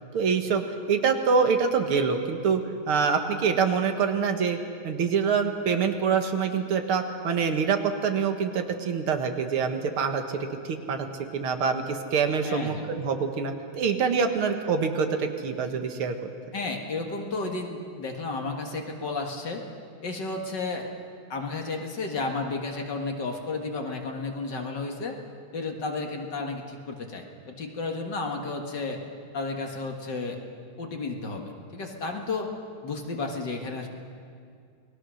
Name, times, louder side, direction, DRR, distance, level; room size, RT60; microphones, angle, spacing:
voice 1, 0.1-0.6 0.9-2.6 2.9-4.6 4.8-11.1 11.3-16.2, right 6 dB, 80° right, 6 dB, 2.4 m, -25 dB
voice 2, 12.4-12.9 16.5-19.6 20.0-20.9 21.3-25.2 25.5-29.0 29.3-30.4 30.8-32.5 32.8-33.9, left 3 dB, 55° left, 2 dB, 2.4 m, -32 dB
28.5 x 20.5 x 6.4 m, 2.3 s
omnidirectional pair, 2.3 m